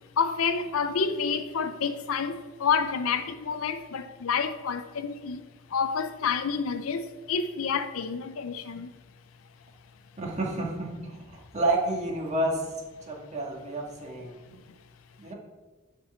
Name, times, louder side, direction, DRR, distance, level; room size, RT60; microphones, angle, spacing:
voice 1, 0.2-5.4 5.7-8.9, left 6 dB, 90° left, 0.5 m, -29 dB
voice 2, 10.2-12.6 13.1-14.4 15.2-15.3, right 2 dB, 35° right, 1.8 m, -30 dB
7.9 x 4.5 x 6.8 m
head